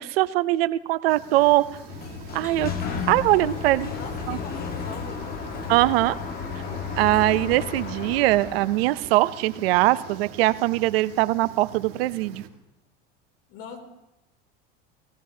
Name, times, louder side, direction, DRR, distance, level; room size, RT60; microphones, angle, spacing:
voice 1, 0.0-1.7 2.3-2.7 3.1-3.9 4.3-4.4 5.7-6.2 7.0-12.4, right 17 dB, 90° right, 17 dB, 0.6 m, -21 dB
sound 1, 1.1-12.5, right 8 dB, 55° right, 1.6 m, -44 dB
Sliding door, 1.6-8.9, left 6 dB, 30° left, 1.4 m, -33 dB
voice 2, 3.9-5.4 13.5-13.8, left 5 dB, 70° left, 2 dB, 3.1 m, -41 dB
18.5 x 16.5 x 2.8 m, 0.96 s
supercardioid pair, 140°, 29 cm